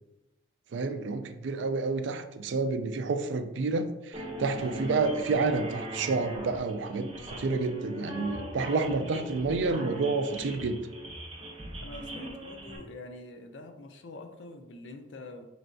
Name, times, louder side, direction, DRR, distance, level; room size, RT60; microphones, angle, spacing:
voice 1, 0.7-10.9, right 3 dB, 75° right, 9 dB, 0.3 m, -29 dB
sound 1, 4.1-12.8, equal, 30° right, 0.7 m, -40 dB
voice 2, 11.8-15.5, left 2 dB, 70° left, 5 dB, 0.5 m, -45 dB
4.5 x 3.2 x 2.6 m, 0.98 s
head